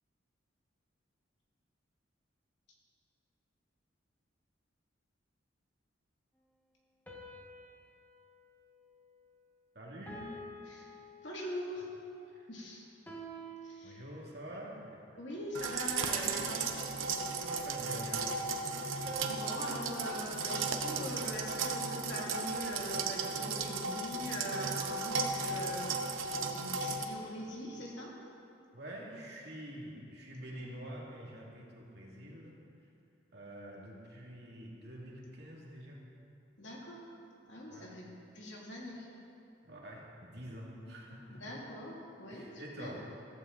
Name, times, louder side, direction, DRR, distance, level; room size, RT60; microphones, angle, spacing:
sound 1, 7.1-9.6 10.1-11.8 13.1-14.6 16.1-17.9 19.1-21.4, equal, 10° left, 1.5 m, -51 dB
voice 1, 9.7-10.4 12.3-12.5 13.8-15.0 17.4-18.6 28.7-32.6 33.3-36.0 37.7-37.9 39.6-41.5 42.3-43.0, right 1 dB, 55° right, -3 dB, 2.6 m, -47 dB
voice 2, 11.2-11.9 12.5-12.9 13.6-14.0 15.2-16.6 19.0-25.9 26.1-28.1 36.6-37.1 37.5-38.1 38.3-39.1 40.8-43.0, left 1 dB, 65° left, -3 dB, 2.8 m, -42 dB
sound 2, 15.5-27.0, right 4 dB, 90° right, 1.0 m, -35 dB
15.0 x 15.0 x 4.0 m, 2.6 s
head